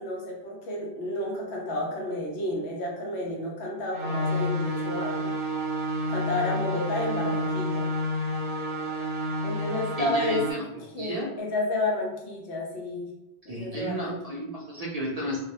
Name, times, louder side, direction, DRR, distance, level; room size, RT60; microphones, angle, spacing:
voice 1, 0.0-5.3 6.1-7.9 9.4-10.4 10.9-13.1 13.5-14.2, left 1 dB, 85° left, -1 dB, 1.0 m, -31 dB
sound 1, 3.9-10.5, equal, 80° right, 0.9 m, -29 dB
voice 2, 10.0-10.7 11.0-11.3 13.5-15.4, equal, 55° right, -4 dB, 0.4 m, -32 dB
2.4 x 2.0 x 2.8 m, 0.89 s
omnidirectional pair, 1.1 m